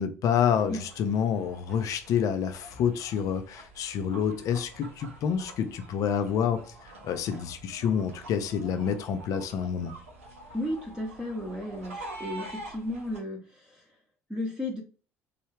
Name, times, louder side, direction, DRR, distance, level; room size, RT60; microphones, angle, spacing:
voice 1, 0.0-10.0, left 8 dB, 55° left, 0.4 m, -28 dB
sound 1, 0.6-13.2, right 2 dB, 85° right, 0.7 m, -47 dB
voice 2, 10.5-13.9 14.3-14.8, left 1 dB, 10° right, 0.8 m, -34 dB
3.1 x 2.3 x 3.1 m
hypercardioid pair, 60°, 7 cm